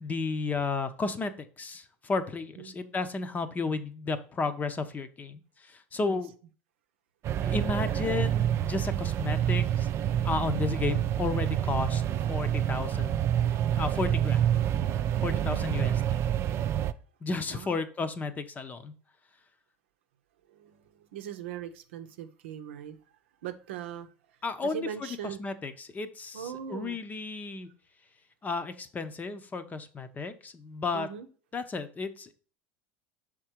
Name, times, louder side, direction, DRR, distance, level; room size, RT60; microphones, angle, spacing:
voice 1, 0.0-6.3 7.4-9.9 10.2-13.2 13.8-14.6 15.2-15.9 17.2-18.9 24.4-27.7 28.4-31.1 31.5-32.3, left 4 dB, 25° left, 0.7 m, -33 dB
sound 1, 7.2-16.9, right 10 dB, 45° right, 0.4 m, -27 dB
voice 2, 15.3-15.7 17.5-17.8 20.5-23.0 23.4-24.1 24.6-25.4 26.3-27.0 30.9-31.3, right 8 dB, 80° right, 0.7 m, -40 dB
6.4 x 3.7 x 4.5 m
hypercardioid pair, 90°, 6 cm